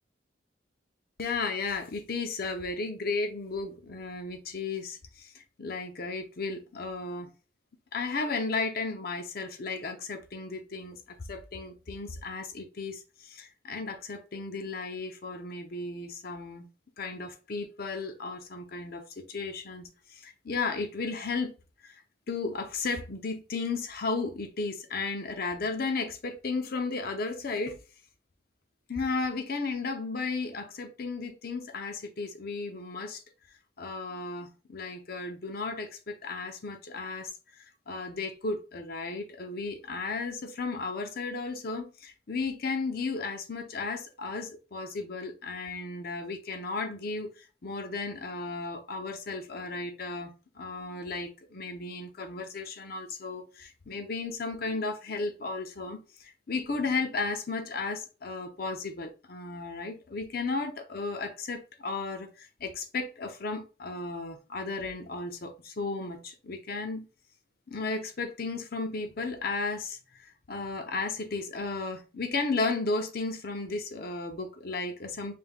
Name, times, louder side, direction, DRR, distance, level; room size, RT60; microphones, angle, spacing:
voice 1, 1.2-7.3 7.9-16.7 17.0-19.0 19.3-21.5 21.8-22.0 22.3-27.8 28.9-33.2 33.8-67.1 67.7-75.4, left 3 dB, 50° left, 0.7 m, -34 dB
5.2 x 3.4 x 2.2 m
head